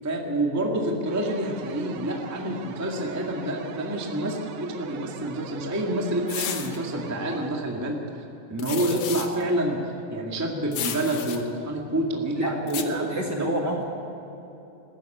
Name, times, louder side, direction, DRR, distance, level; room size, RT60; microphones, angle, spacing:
voice 1, 0.0-8.0 8.5-13.6, right 1 dB, 10° right, 0 dB, 0.7 m, -28 dB
sound 1, 1.1-7.5, right 7 dB, 70° right, 1.9 m, -41 dB
sound 2, 6.3-6.8 8.6-9.3 10.7-11.4 12.7-12.8, left 9 dB, 85° left, 1.3 m, -32 dB
voice 2, 12.4-13.8, right 1 dB, 45° right, -1 dB, 1.4 m, -29 dB
20.5 x 14.0 x 9.1 m, 2.9 s
omnidirectional pair, 4.3 m